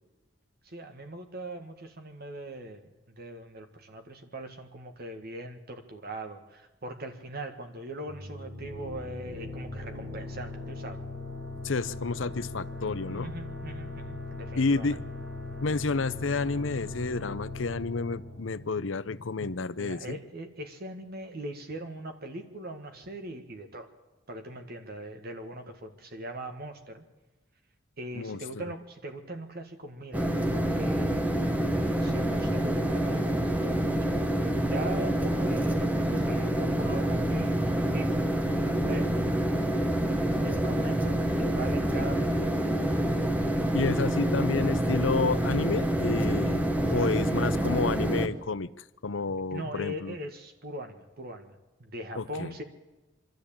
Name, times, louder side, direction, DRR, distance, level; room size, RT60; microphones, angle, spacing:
voice 1, 0.7-2.8 3.2-11.0 13.1-15.0 19.8-23.9 24.3-27.0 28.0-31.2 32.0-34.0 34.6-38.2 38.9-39.1 40.4-43.1 46.9-47.2 49.5-52.6, right 1 dB, 55° right, 5 dB, 1.8 m, -41 dB
sound 1, 8.1-19.5, left 2 dB, 90° right, 5.0 m, -39 dB
voice 2, 11.6-13.3 14.5-15.0 15.6-20.2 28.1-28.6 38.5-38.7 43.7-48.7 49.0-50.2 52.1-52.5, left 4 dB, 80° left, 16 dB, 0.8 m, -30 dB
sound 2, 30.1-48.3, right 1 dB, 10° right, 1.3 m, -27 dB
24.0 x 13.0 x 8.8 m, 1.1 s
head